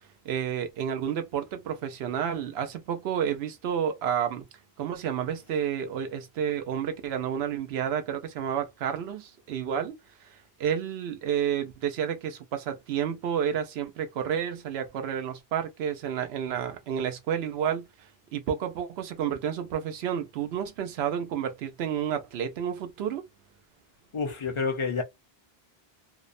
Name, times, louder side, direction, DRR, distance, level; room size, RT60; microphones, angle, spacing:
voice 1, 0.2-4.5 4.8-10.3 10.6-17.9 18.3-23.2, right 8 dB, 85° right, 0.8 m, -30 dB
voice 2, 24.1-25.0, left 5 dB, 40° left, 0.5 m, -28 dB
2.6 x 2.0 x 2.5 m
omnidirectional pair, 1.0 m